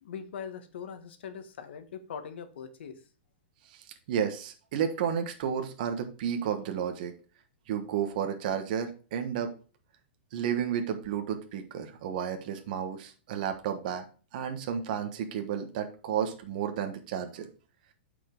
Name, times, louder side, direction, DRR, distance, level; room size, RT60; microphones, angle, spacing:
voice 1, 0.0-3.0, left 7 dB, 75° left, 9 dB, 1.3 m, -41 dB
voice 2, 4.1-7.1 7.7-9.5 10.3-14.0 14.3-17.5, right 8 dB, 45° right, 6 dB, 1.3 m, -32 dB
8.5 x 5.3 x 3.8 m, 0.36 s
supercardioid pair, 170°, 6 cm